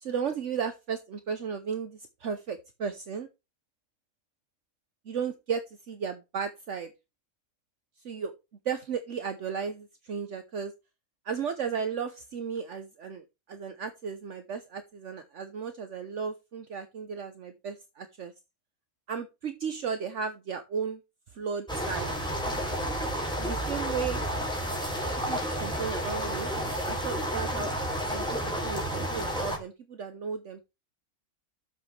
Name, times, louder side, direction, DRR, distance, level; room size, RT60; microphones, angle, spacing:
voice 1, 0.0-3.3 5.1-6.9 8.0-8.3 8.6-10.7 11.2-18.3 19.1-21.0 21.3-22.1 23.4-24.2 25.3-26.5 26.8-27.7 28.0-30.6, right 6 dB, 60° right, 8 dB, 1.2 m, -35 dB
sound 1, 21.7-29.6, equal, 5° left, 3.1 m, -31 dB
12.0 x 7.4 x 3.3 m, 0.26 s
omnidirectional pair, 1.4 m